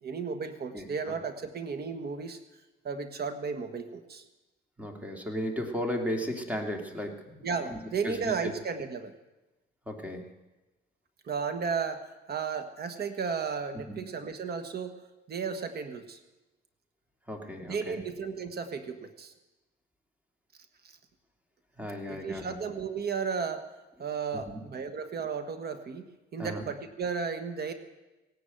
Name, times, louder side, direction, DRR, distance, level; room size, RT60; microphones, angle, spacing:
voice 1, 0.0-2.4 2.8-4.2 7.4-9.1 11.2-15.0 15.3-16.2 17.7-19.3 22.1-23.6 24.0-27.7, right 5 dB, 55° right, 8 dB, 1.6 m, -34 dB
voice 2, 4.8-7.8 8.0-8.5 9.9-10.3 13.9-14.0 17.3-18.0 21.8-22.6 24.3-24.6 26.4-26.7, equal, 5° right, 2 dB, 2.7 m, -35 dB
17.0 x 10.0 x 8.0 m, 1.1 s
cardioid pair, 90°, 20 cm